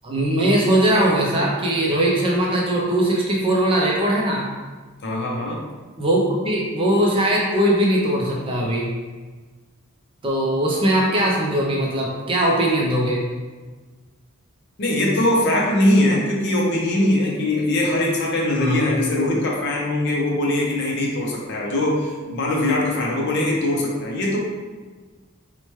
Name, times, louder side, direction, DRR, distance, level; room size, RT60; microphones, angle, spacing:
voice 1, 0.0-4.5 6.0-8.9 10.2-13.2 18.6-18.8, right 1 dB, 25° right, -3 dB, 0.3 m, -20 dB
voice 2, 5.0-5.6 14.8-24.6, left 1 dB, 50° left, -2 dB, 0.5 m, -21 dB
2.9 x 2.1 x 3.0 m, 1.4 s
head